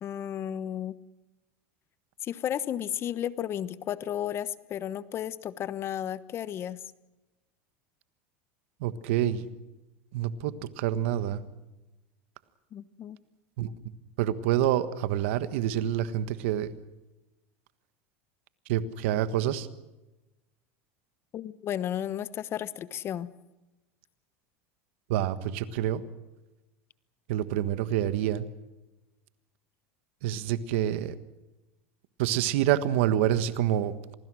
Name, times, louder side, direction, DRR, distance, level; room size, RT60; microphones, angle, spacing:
voice 1, 0.0-1.0 2.2-6.8 12.7-13.2 21.3-23.3, left 10 dB, 40° left, 16 dB, 1.1 m, -33 dB
voice 2, 8.8-9.4 10.1-11.4 13.6-13.7 14.2-16.7 18.7-19.7 25.1-26.0 27.3-28.5 30.2-31.2 32.2-34.1, right 11 dB, 75° right, 13 dB, 1.4 m, -27 dB
27.0 x 20.0 x 6.4 m, 1.1 s
supercardioid pair, 115°, 7 cm